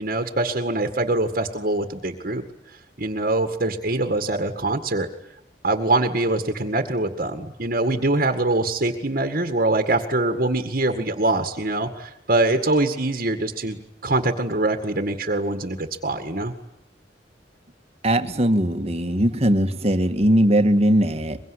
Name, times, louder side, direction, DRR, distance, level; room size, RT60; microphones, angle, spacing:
voice 1, 0.0-2.4 3.0-5.1 5.6-13.8 14.0-16.5, right 2 dB, 50° right, 5 dB, 2.0 m, -23 dB
voice 2, 18.0-21.4, right 1 dB, 35° right, 8 dB, 1.8 m, -20 dB
24.0 x 23.0 x 9.9 m, 0.80 s
head